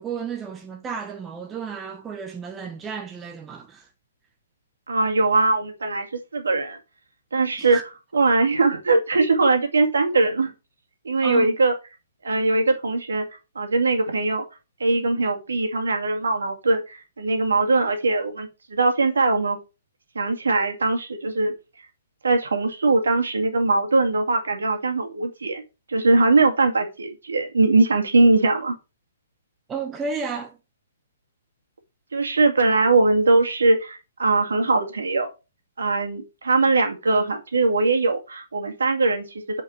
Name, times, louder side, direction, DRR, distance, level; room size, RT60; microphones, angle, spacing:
voice 1, 0.0-3.9 7.6-7.8 11.2-11.5 29.7-30.6, right 5 dB, 15° right, 1.2 m, -32 dB
voice 2, 4.9-6.1 6.3-6.8 7.3-7.8 8.1-10.5 11.0-11.7 12.2-13.2 13.6-14.4 14.8-19.6 20.1-21.5 22.2-25.6 25.9-28.7 32.1-35.3 35.8-39.6, right 3 dB, 75° right, 2.3 m, -21 dB
8.2 x 5.3 x 4.6 m
figure-of-eight pair, 125°, 0 cm